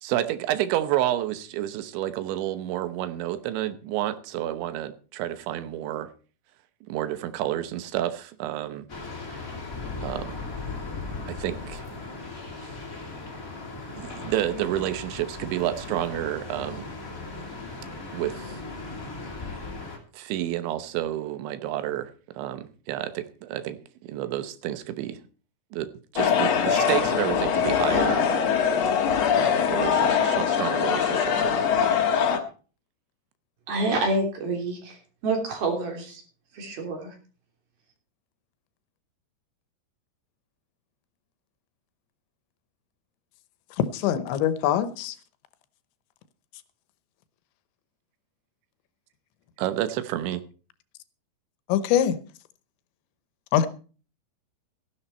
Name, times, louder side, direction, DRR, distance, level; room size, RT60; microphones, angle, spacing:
voice 1, 0.0-6.1 6.9-8.8 10.0-10.3 11.3-11.8 14.0-16.9 18.1-18.5 20.1-22.1 22.4-23.8 24.0-25.2 25.7-28.5 28.9-29.0 29.3-31.9 49.6-50.4, right 13 dB, 85° right, 3.4 m, -30 dB
sound 1, 8.9-20.0, left 3 dB, 25° left, 2.3 m, -37 dB
sound 2, 26.2-32.4, left 7 dB, 60° left, 1.8 m, -22 dB
voice 2, 33.7-35.0 35.2-36.2 36.5-37.1, right 2 dB, 60° right, 5.0 m, -27 dB
voice 3, 43.9-45.2 51.7-52.2 53.5-53.7, left 10 dB, 85° left, 3.2 m, -23 dB
15.0 x 11.5 x 4.3 m
omnidirectional pair, 5.1 m